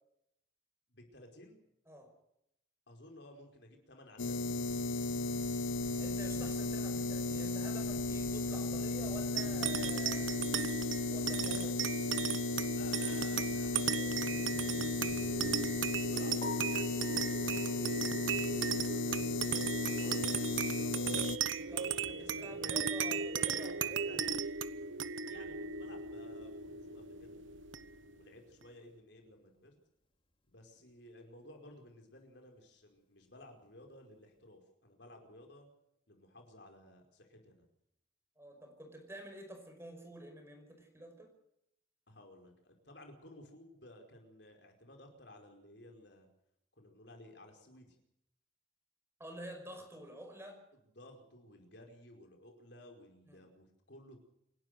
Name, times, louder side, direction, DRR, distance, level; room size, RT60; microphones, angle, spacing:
voice 1, 0.9-1.6 2.9-4.9 5.2-5.7 12.7-21.1 21.6-23.2 23.8-24.2 25.3-27.4 28.1-29.8 30.5-35.7 36.1-37.6 42.1-46.3 46.7-48.0 50.9-54.2, left 1 dB, 60° left, 3 dB, 5.0 m, -56 dB
sound 1, 4.2-21.4, left 2 dB, 90° left, 1.0 m, -35 dB
voice 2, 6.0-10.4 11.0-11.8 21.6-24.1 38.4-41.3 49.2-50.6 53.3-53.4, equal, 15° right, 4 dB, 5.4 m, -49 dB
sound 2, 9.4-28.2, right 6 dB, 80° right, 1.0 m, -37 dB
Piano, 16.4-20.4 20.7-20.8 21.3-21.4 21.8-21.9 25.0-25.1 33.6-33.8, left 4 dB, 30° left, 3.4 m, -50 dB
27.5 x 12.0 x 7.9 m, 0.79 s
head